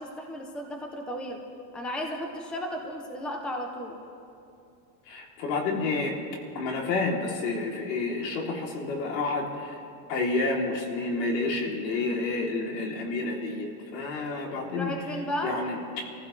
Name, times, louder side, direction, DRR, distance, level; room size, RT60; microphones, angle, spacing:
voice 1, 0.0-1.4 1.7-4.0 14.8-15.6, equal, ahead, 2 dB, 0.5 m, -34 dB
voice 2, 5.1-6.2 6.5-9.8 10.1-14.9 15.4-16.1, left 3 dB, 90° left, 0 dB, 3.2 m, -29 dB
27.0 x 15.5 x 3.2 m, 2.6 s
supercardioid pair, 170°, 49 cm